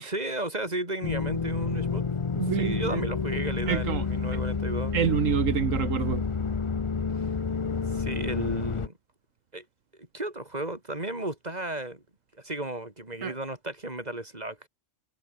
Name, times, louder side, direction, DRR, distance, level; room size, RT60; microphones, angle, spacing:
voice 1, 0.0-4.9 7.9-9.0 9.5-9.7 10.1-12.0 12.4-14.7, right 2 dB, 30° right, 4.3 m, -34 dB
sound 1, 1.0-8.9, left 5 dB, 30° left, 0.6 m, -29 dB
voice 2, 2.3-3.1 3.7-4.0 4.9-6.2 13.2-13.3, right 8 dB, 75° right, 1.4 m, -27 dB
omnidirectional pair, 1.4 m